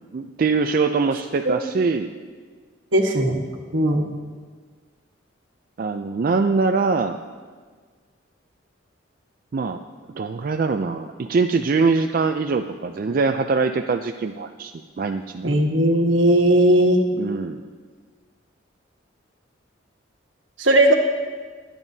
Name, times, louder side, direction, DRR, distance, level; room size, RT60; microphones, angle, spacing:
voice 1, 0.1-2.1 5.8-7.2 9.5-9.8 10.1-15.5 17.2-17.6, right 4 dB, 45° right, 6 dB, 0.4 m, -23 dB
voice 2, 2.9-3.5 3.7-4.1 15.4-17.0 20.6-20.9, right 1 dB, 75° right, 3 dB, 1.3 m, -17 dB
22.5 x 9.0 x 2.8 m, 1.5 s
head